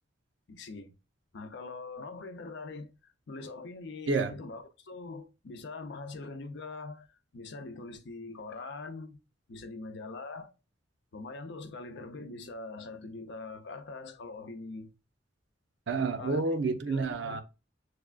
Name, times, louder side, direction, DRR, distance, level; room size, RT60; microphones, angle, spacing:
voice 1, 0.5-0.9 1.3-9.2 9.5-10.5 11.1-14.9 16.2-16.4 16.9-17.4, left 3 dB, 65° left, 0.6 m, -43 dB
voice 2, 15.9-17.4, right 3 dB, 65° right, 0.6 m, -29 dB
6.3 x 2.3 x 2.4 m
head